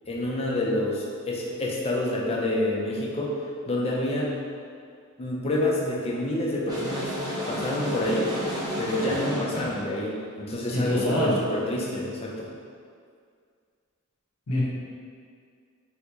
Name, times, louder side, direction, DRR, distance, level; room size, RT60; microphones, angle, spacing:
voice 1, 0.1-3.4 3.7-4.3 5.2-7.2 7.5-8.4 8.8-12.5, left 1 dB, 25° left, -3 dB, 0.4 m, -28 dB
sound 1, 6.7-9.8, equal, 15° right, 0.7 m, -32 dB
voice 2, 10.7-11.4 14.5-14.6, left 1 dB, 85° left, -6 dB, 0.8 m, -25 dB
3.6 x 3.0 x 2.3 m, 2.2 s
head